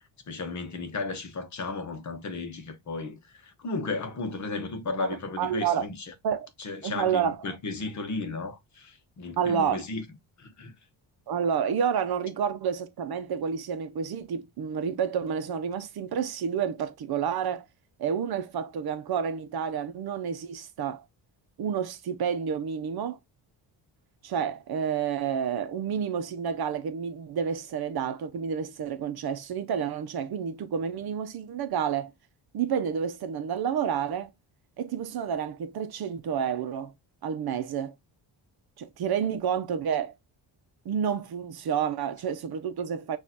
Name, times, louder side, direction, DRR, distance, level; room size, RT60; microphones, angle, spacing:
voice 1, 0.0-6.1 6.6-10.0 10.4-10.7, left 3 dB, 40° left, 1.0 m, -34 dB
voice 2, 5.4-5.9 6.2-6.5 6.8-7.3 9.4-9.8 11.3-17.6 18.0-21.0 21.6-23.2 24.2-32.1 32.5-34.3 34.8-36.9 37.2-37.9 38.8-40.1 40.8-43.2, right 7 dB, 55° right, 0.7 m, -29 dB
6.5 x 2.6 x 2.8 m
cardioid pair, 155°, 45 cm